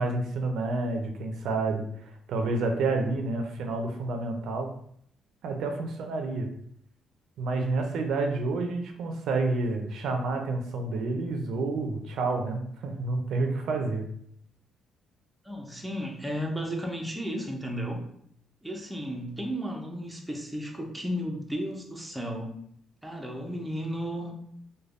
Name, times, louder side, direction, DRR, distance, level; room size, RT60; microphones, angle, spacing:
voice 1, 0.0-4.7 5.4-6.5 7.4-14.1, right 3 dB, 75° right, 3 dB, 0.4 m, -29 dB
voice 2, 15.4-18.0 18.6-22.6 23.0-24.3, equal, 5° right, 1 dB, 0.5 m, -34 dB
3.2 x 2.2 x 2.4 m, 0.67 s
cardioid pair, 90°, 0 cm